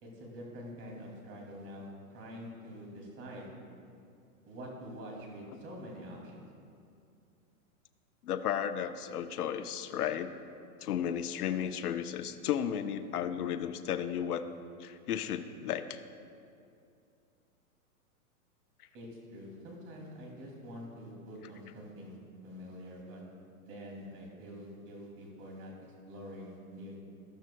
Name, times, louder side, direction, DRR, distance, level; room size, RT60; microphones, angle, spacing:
voice 1, 0.0-3.5 4.5-6.5 18.9-22.1 22.4-23.2 23.6-25.7 26.1-27.1, equal, 30° right, -1 dB, 2.7 m, -46 dB
voice 2, 8.2-10.4 10.8-14.4 14.8-16.0, left 9 dB, 85° left, 10 dB, 0.8 m, -34 dB
14.5 x 13.0 x 2.3 m, 2.5 s
hypercardioid pair, 140°, 44 cm